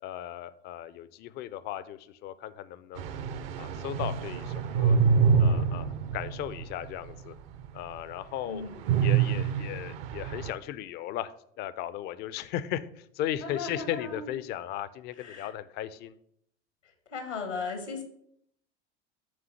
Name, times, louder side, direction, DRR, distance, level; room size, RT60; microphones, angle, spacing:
voice 1, 0.0-3.0 3.6-5.0 5.4-5.9 6.1-7.3 7.7-8.7 9.0-11.3 11.6-16.1, left 12 dB, 30° left, 15 dB, 0.4 m, -36 dB
sound 1, 3.0-7.3 7.6-7.8 8.8-10.5, right 6 dB, 55° right, 0.6 m, -26 dB
voice 2, 8.5-8.8 13.4-14.3 15.2-15.5 17.1-18.0, left 4 dB, 85° left, 6 dB, 1.2 m, -36 dB
6.3 x 3.6 x 5.8 m, 0.71 s
figure-of-eight pair, 75°, 35 cm